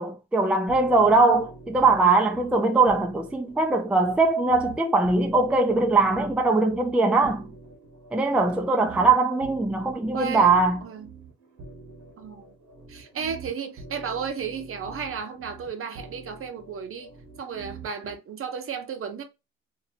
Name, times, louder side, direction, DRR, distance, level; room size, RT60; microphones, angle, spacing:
voice 1, 0.0-7.5 8.1-10.8, right 3 dB, 5° right, 0.4 m, -21 dB
sound 1, 0.7-18.1, right 3 dB, 70° right, 1.1 m, -45 dB
voice 2, 10.1-10.5 10.8-11.1 12.2-12.4 12.9-17.1 17.4-19.2, right 6 dB, 45° right, 0.7 m, -33 dB
2.7 x 2.6 x 2.8 m
cardioid pair, 90°, 30 cm